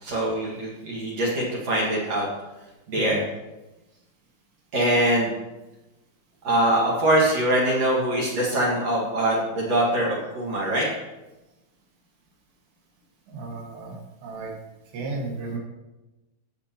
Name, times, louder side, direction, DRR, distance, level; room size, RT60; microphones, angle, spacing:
voice 1, 0.0-2.3 2.9-3.2 4.7-5.3 6.4-10.9, right 1 dB, 50° right, -5 dB, 2.6 m, -23 dB
voice 2, 13.3-14.5 14.9-15.6, right 3 dB, 85° right, -2 dB, 4.0 m, -34 dB
16.5 x 7.2 x 3.0 m, 1.0 s
omnidirectional pair, 4.8 m